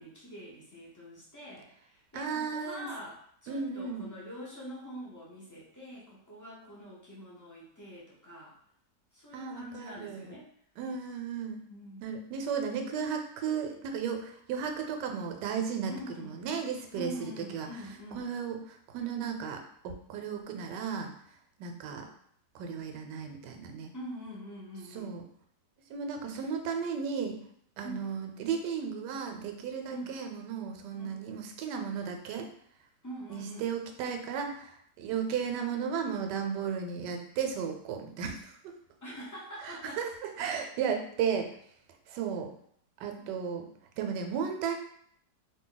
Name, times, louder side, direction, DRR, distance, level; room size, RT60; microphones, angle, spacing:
voice 1, 0.0-8.5 9.1-10.5 11.7-12.0 15.9-16.3 16.9-18.3 23.9-25.2 27.8-28.1 29.9-30.2 30.9-31.2 33.0-33.7 39.0-40.0 43.1-43.3, equal, 30° left, -7 dB, 0.3 m, -44 dB
voice 2, 2.1-2.9 3.5-4.1 9.3-10.3 10.8-11.6 12.0-15.9 16.2-17.7 18.1-21.1 21.6-22.1 22.5-23.9 24.9-25.2 25.9-27.4 27.8-32.5 33.3-38.7 39.6-41.5 42.1-42.5 43.0-43.7 44.0-44.7, right 6 dB, 80° right, 4 dB, 1.2 m, -34 dB
2.8 x 2.6 x 3.8 m, 0.67 s
omnidirectional pair, 1.9 m